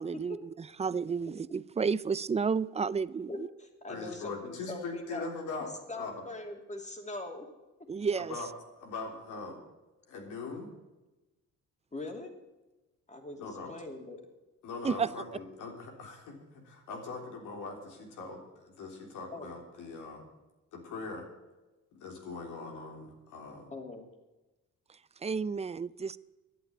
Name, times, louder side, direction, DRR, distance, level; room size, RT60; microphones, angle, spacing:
voice 1, 0.0-3.5 7.9-8.4 14.8-15.1 24.9-26.2, right 5 dB, 20° right, 18 dB, 0.5 m, -32 dB
voice 2, 3.3-5.3 5.9-7.5 11.9-12.3 13.1-14.2 19.3-19.5 23.7-24.1, left 2 dB, 25° left, 3 dB, 2.8 m, -42 dB
voice 3, 3.9-6.2 8.2-9.6 10.1-10.7 13.4-13.7 14.6-20.2 20.7-21.3 21.9-23.7, left 3 dB, 85° left, 2 dB, 3.5 m, -41 dB
11.0 x 8.7 x 8.7 m, 1.1 s
cardioid pair, 90°, 30 cm